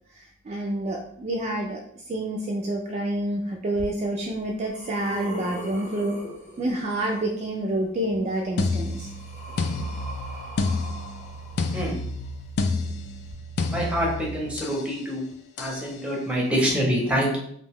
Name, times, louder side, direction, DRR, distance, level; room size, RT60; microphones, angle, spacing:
voice 1, 0.5-1.8 2.1-6.2 6.6-9.1, right 1 dB, 30° right, -1 dB, 0.3 m, -28 dB
sound 1, 3.8-3.9 4.4-7.2 8.4-12.3 13.2-13.3, equal, 35° left, 0.9 m, -40 dB
sound 2, 8.6-14.9 15.6-15.9, left 3 dB, 50° left, 0.3 m, -29 dB
voice 2, 13.7-15.2 15.6-17.4, equal, 5° right, -3 dB, 0.7 m, -25 dB
2.5 x 2.2 x 3.4 m, 0.67 s
head